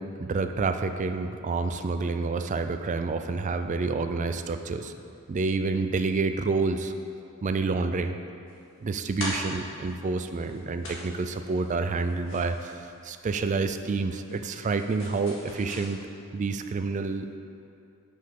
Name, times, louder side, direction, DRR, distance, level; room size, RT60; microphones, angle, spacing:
voice 1, 0.0-4.9 5.3-6.9 7.4-8.2 8.8-16.0 16.3-17.4, right 4 dB, 35° right, 8 dB, 0.3 m, -28 dB
sound 1, 8.5-15.9, left 1 dB, 65° left, 1.8 m, -41 dB
6.0 x 5.2 x 5.4 m, 2.6 s
head